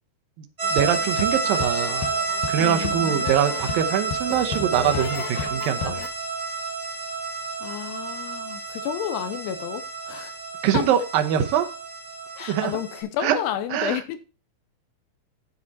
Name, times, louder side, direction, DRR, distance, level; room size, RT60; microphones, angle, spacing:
sound 1, 0.6-6.1, left 9 dB, 75° left, 2.7 m, -34 dB
sound 2, 0.6-13.0, right 4 dB, 10° right, 3.7 m, -30 dB
voice 1, 0.7-2.1 2.5-5.9 10.6-11.7 12.5-12.8 13.2-13.4 13.7-14.0, right 10 dB, 70° right, 2.5 m, -23 dB
voice 2, 2.6-3.2 7.6-10.3 10.7-10.8 12.4-14.2, left 10 dB, 90° left, 2.8 m, -31 dB
8.5 x 7.3 x 4.2 m
omnidirectional pair, 4.8 m